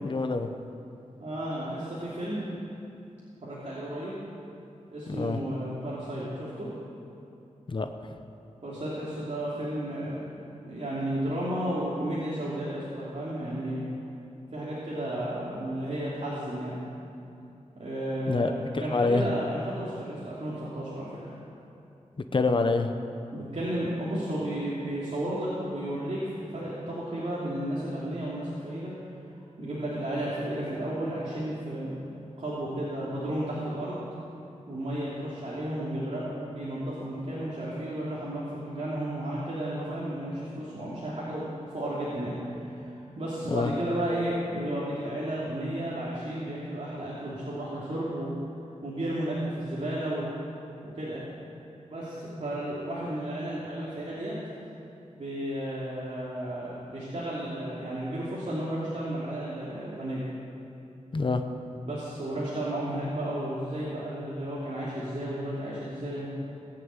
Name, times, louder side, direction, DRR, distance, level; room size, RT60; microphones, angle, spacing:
voice 1, 0.0-0.5 5.1-5.4 7.7-8.1 18.3-19.3 22.3-22.9 43.5-43.7 61.1-61.4, left 3 dB, 40° left, 7 dB, 0.8 m, -26 dB
voice 2, 1.2-2.5 3.4-4.2 4.9-6.7 8.6-10.2 10.6-13.8 14.5-16.8 17.8-18.5 18.8-21.3 23.3-28.9 29.6-32.1 32.4-34.0 34.7-48.3 48.8-50.3 50.8-51.3 51.9-54.3 55.1-60.2 61.8-66.2, right 1 dB, 55° right, -8 dB, 2.8 m, -33 dB
19.0 x 7.4 x 8.9 m, 2.8 s
wide cardioid pair, 105°, 13 cm